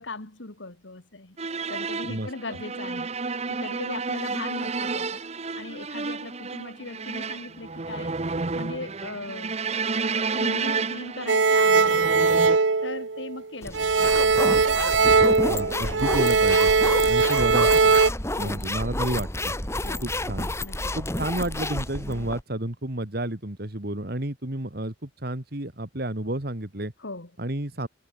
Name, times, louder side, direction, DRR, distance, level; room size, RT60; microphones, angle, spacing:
voice 1, 0.0-1.4 1.7-3.1 3.5-5.2 5.6-8.2 8.5-9.7 10.0-12.4 12.8-14.3 18.4-18.7 19.8-20.1 20.6-21.0 27.0-27.3, left 2 dB, 85° left, 2.4 m, -39 dB
sound 1, 1.4-12.6, right 4 dB, 35° right, 1.0 m, -31 dB
voice 2, 2.1-2.6 15.5-16.7 17.1-17.7 18.4-19.5 20.0-20.5 20.9-26.9 27.4-27.9, right 1 dB, 55° right, 2.6 m, -31 dB
sound 2, 11.3-13.4 13.7-18.1, right 4 dB, 90° right, 1.0 m, -20 dB
sound 3, 13.6-22.4, left 1 dB, 15° left, 2.8 m, -30 dB
head